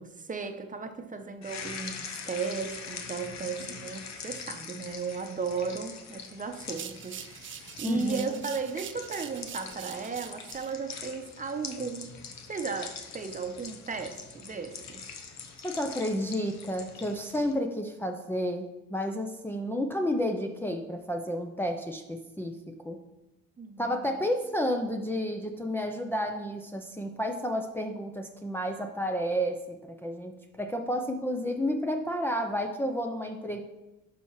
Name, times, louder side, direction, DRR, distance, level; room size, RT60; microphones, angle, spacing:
voice 1, 0.0-7.2 7.8-12.1 12.5-15.0 23.6-23.9, right 5 dB, 25° right, 6 dB, 0.8 m, -35 dB
sound 1, 1.4-17.5, left 6 dB, 65° left, 0.9 m, -43 dB
sound 2, 6.6-10.7, right 10 dB, 40° right, 0.4 m, -44 dB
voice 2, 7.8-8.5 15.6-23.0 23.8-33.6, equal, 5° left, 2 dB, 0.5 m, -31 dB
11.5 x 4.3 x 3.1 m, 1.0 s
cardioid pair, 90°, 30 cm